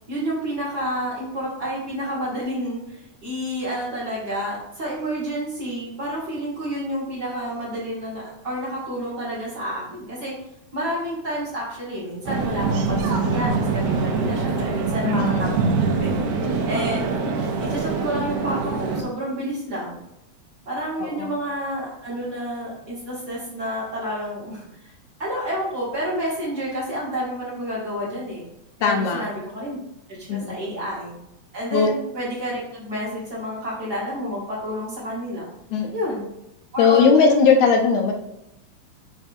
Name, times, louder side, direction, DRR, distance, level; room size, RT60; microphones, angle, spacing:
voice 1, 0.1-10.3 10.7-13.0 13.3-15.5 15.8-16.1 16.7-17.0 17.6-20.0 20.7-24.9 25.2-28.4 28.8-29.8 30.1-31.1 31.5-35.5 35.9-36.3 36.7-37.6, equal, 35° right, -7 dB, 2.5 m, -29 dB
sound 1, 12.3-19.0, right 4 dB, 80° right, 2.1 m, -24 dB
voice 2, 15.1-15.5 21.0-21.4 28.8-29.3 30.3-30.7 31.7-31.9 35.7-35.9 36.8-38.1, left 5 dB, 80° left, 4 dB, 2.1 m, -19 dB
6.9 x 3.5 x 4.4 m, 0.83 s
omnidirectional pair, 3.4 m